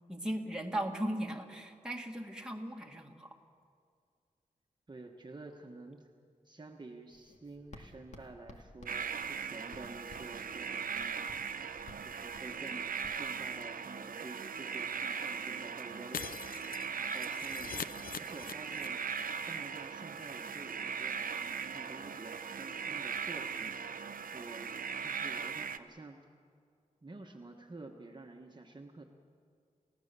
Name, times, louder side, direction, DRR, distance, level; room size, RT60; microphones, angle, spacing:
voice 1, 0.1-3.3, right 1 dB, 5° right, 1 dB, 1.9 m, -37 dB
voice 2, 4.9-6.1 6.4-11.2 12.0-12.8 13.1-16.5 17.0-17.8 18.2-19.0 19.5-23.7 24.3-24.7 25.0-26.2 27.0-29.0, right 2 dB, 30° right, 1 dB, 1.3 m, -50 dB
Writing, 7.1-13.4, left 2 dB, 55° left, 1.9 m, -56 dB
sound 1, 8.9-25.8, right 6 dB, 80° right, 0.8 m, -39 dB
Shatter, 16.1-19.2 19.5-19.6 19.9-20.0, left 7 dB, 85° left, 0.6 m, -43 dB
29.0 x 16.5 x 6.9 m, 2.2 s
wide cardioid pair, 125°, 14 cm